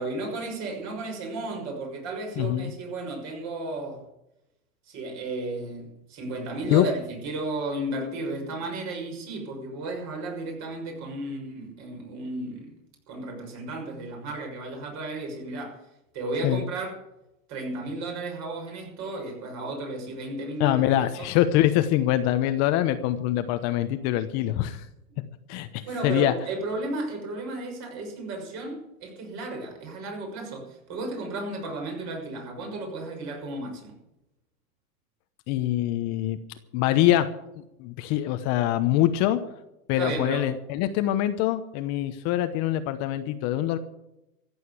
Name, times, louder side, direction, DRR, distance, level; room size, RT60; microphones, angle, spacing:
voice 1, 0.0-4.0 4.9-12.7 13.1-15.8 16.1-17.0 17.5-21.3 25.9-34.0 40.0-40.5, right 2 dB, 40° right, 2 dB, 6.3 m, -34 dB
voice 2, 2.4-2.7 6.7-6.8 16.4-16.6 20.6-24.8 25.5-26.3 35.5-36.4 36.7-37.3 37.8-39.4 39.9-43.8, left 13 dB, 35° left, 9 dB, 1.0 m, -24 dB
14.5 x 8.4 x 8.2 m, 0.88 s
hypercardioid pair, 130°, 44 cm